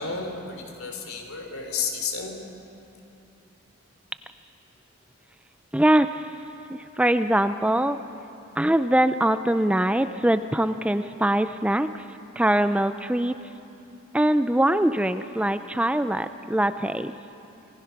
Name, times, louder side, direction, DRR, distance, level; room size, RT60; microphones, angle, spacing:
voice 1, 0.0-2.4, left 5 dB, 90° left, 3 dB, 3.3 m, -32 dB
voice 2, 5.7-6.3 6.7-8.0 8.6-12.1 12.4-13.4 14.1-17.1, right 1 dB, 5° right, 11 dB, 0.4 m, -22 dB
26.5 x 19.0 x 5.9 m, 3.0 s
head